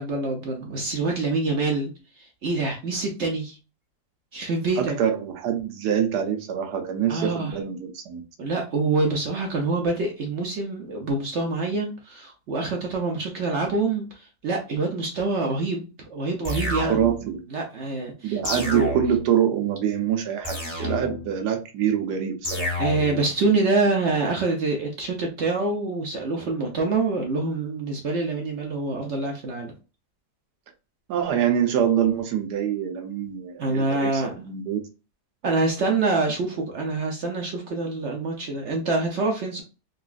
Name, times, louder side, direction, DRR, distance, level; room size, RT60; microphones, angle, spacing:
voice 1, 0.0-1.9 2.2-3.6 4.3-5.0 7.1-7.6 8.4-17.0 17.5-18.9 22.8-29.7 33.6-34.4 35.4-39.6, right 3 dB, 60° right, 0.7 m, -26 dB
voice 2, 4.8-8.2 16.9-17.4 18.2-22.7 31.1-34.8, right 9 dB, 80° right, 1.3 m, -25 dB
sound 1, 16.4-17.3 18.4-19.3 20.4-21.3 22.4-23.3, left 1 dB, 30° left, 0.7 m, -29 dB
3.9 x 2.3 x 2.4 m
omnidirectional pair, 1.7 m